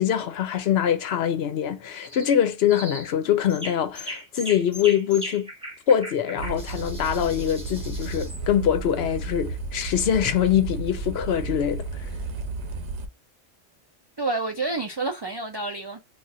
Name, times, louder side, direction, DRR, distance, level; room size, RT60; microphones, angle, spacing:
voice 1, 0.0-5.5 5.9-12.1, left 9 dB, 70° left, 0.8 m, -24 dB
sound 1, 2.0-2.3 2.7-3.1 3.5-8.4, equal, 5° right, 1.0 m, -38 dB
sound 2, 6.4-13.1, right 3 dB, 90° right, 0.9 m, -33 dB
voice 2, 14.2-16.0, right 3 dB, 45° right, 0.3 m, -29 dB
2.4 x 2.4 x 4.0 m
omnidirectional pair, 1.1 m